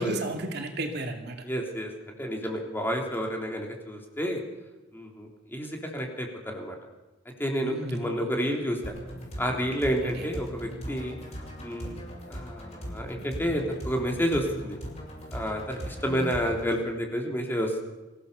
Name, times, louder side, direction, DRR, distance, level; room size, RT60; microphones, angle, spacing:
voice 1, 0.0-1.4 7.6-8.2 10.0-10.3 16.0-16.5, right 1 dB, 60° right, 3 dB, 2.5 m, -34 dB
voice 2, 1.5-1.9 2.2-4.4 4.9-6.8 7.4-8.9 9.4-11.2 11.6-12.0 12.3-14.8 15.3-17.8, equal, 10° left, 1 dB, 3.4 m, -30 dB
sound 1, 8.8-16.8, equal, 35° left, 7.7 m, -39 dB
25.0 x 16.5 x 6.9 m, 1.1 s
head